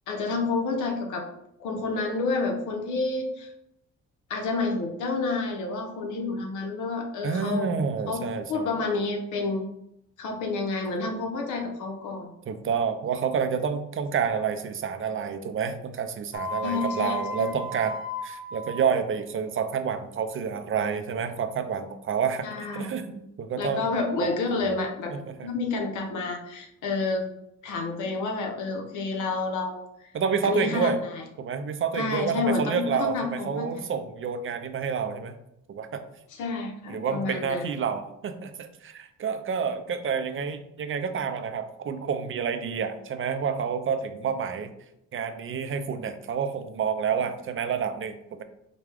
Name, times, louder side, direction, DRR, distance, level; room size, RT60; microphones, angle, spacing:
voice 1, 0.1-1.3 1.6-3.5 4.3-7.7 8.1-9.7 10.2-12.3 16.6-17.5 22.4-22.9 23.6-25.1 25.4-27.3 27.6-30.1 30.4-31.2 31.9-33.8 36.3-37.8, left 3 dB, 80° left, 3 dB, 0.9 m, -29 dB
voice 2, 7.2-8.7 12.5-17.9 18.2-23.9 24.5-24.8 25.1-25.5 30.1-31.0 31.4-35.3 35.7-36.0 36.9-44.7 45.1-48.4, right 6 dB, 45° right, 9 dB, 0.5 m, -29 dB
sound 1, 16.3-18.9, left 3 dB, 30° left, 1.4 m, -34 dB
5.0 x 2.2 x 3.3 m, 0.80 s
cardioid pair, 90°, 30 cm